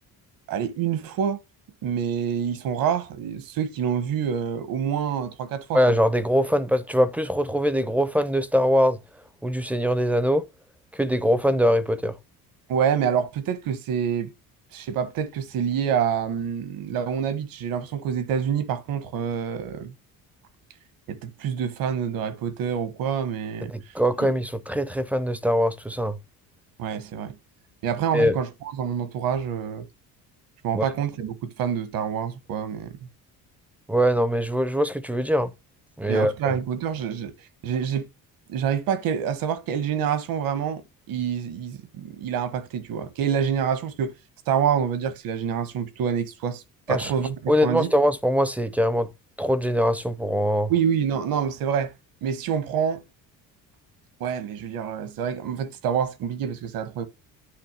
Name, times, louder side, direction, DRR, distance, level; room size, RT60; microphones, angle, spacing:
voice 1, 0.5-1.4 1.8-5.8 12.7-14.3 14.7-19.9 21.1-23.9 24.2-24.3 26.8-27.4 27.8-29.9 30.6-33.1 36.1-37.3 37.6-38.1 38.5-44.2 44.5-47.9 50.7-51.9 52.2-53.0 54.2-57.1, right 8 dB, 70° right, 1.5 m, -27 dB
voice 2, 5.7-9.0 9.4-10.4 10.9-12.1 23.7-26.2 28.1-28.4 30.7-30.8 33.9-35.5 36.0-36.5 46.9-49.1 49.4-50.7, equal, 5° right, 0.4 m, -22 dB
9.8 x 3.4 x 6.7 m
cardioid pair, 170°, 36 cm